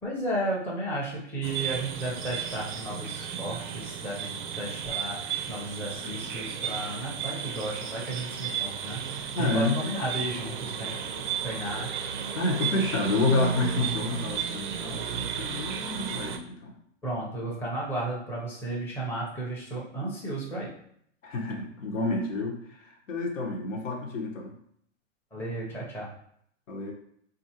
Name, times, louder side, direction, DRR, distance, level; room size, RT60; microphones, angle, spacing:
voice 1, 0.0-11.0 11.4-11.9 17.0-20.7 25.3-26.1, right 1 dB, 5° left, -6 dB, 0.6 m, -34 dB
sound 1, 1.4-16.4, right 8 dB, 40° right, 0.4 m, -34 dB
voice 2, 9.3-9.8 12.3-16.7 21.2-24.5 26.7-26.9, left 2 dB, 85° left, 1 dB, 1.1 m, -29 dB
4.2 x 2.6 x 2.8 m, 0.67 s
hypercardioid pair, 140°, 38 cm